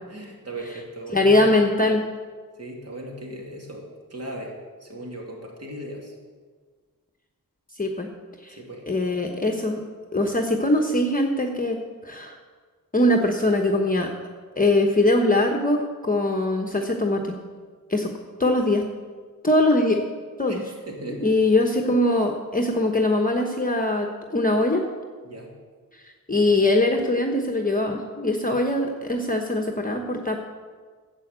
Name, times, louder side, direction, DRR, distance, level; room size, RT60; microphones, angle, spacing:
voice 1, 0.1-1.6 2.6-4.5 4.8-6.2 8.5-8.8 20.5-21.3 25.2-25.5, right 1 dB, 45° right, -1 dB, 2.8 m, -37 dB
voice 2, 1.1-2.0 7.7-8.1 8.4-8.6 8.9-9.8 10.1-12.4 12.9-14.1 14.6-17.3 17.9-18.1 18.4-18.8 19.4-20.0 20.4-20.6 21.2-24.8 25.9-30.4, left 1 dB, 25° left, 3 dB, 1.0 m, -22 dB
11.5 x 7.8 x 7.9 m, 1.5 s
wide cardioid pair, 110°, 35 cm